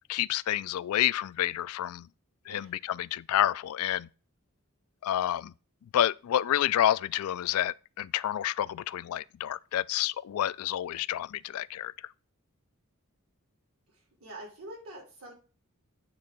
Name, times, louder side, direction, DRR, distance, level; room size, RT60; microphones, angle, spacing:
voice 1, 0.0-2.1 2.5-4.1 5.0-5.5 5.9-11.9, left 11 dB, 75° left, 0.3 m, -29 dB
voice 2, 14.2-15.3, right 1 dB, 70° right, 3.2 m, -45 dB
8.6 x 3.7 x 5.8 m
head